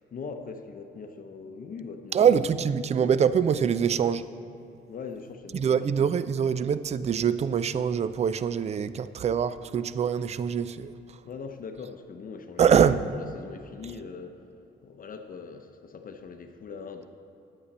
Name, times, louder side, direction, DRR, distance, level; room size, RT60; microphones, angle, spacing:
voice 1, 0.0-2.3 4.9-5.8 11.2-14.5 14.8-17.1, left 5 dB, 45° left, 6 dB, 0.7 m, -41 dB
voice 2, 2.1-4.3 5.5-11.2 12.6-13.0, right 7 dB, 35° right, 15 dB, 0.4 m, -24 dB
10.5 x 8.5 x 4.2 m, 2.8 s
cardioid pair, 90°, 20 cm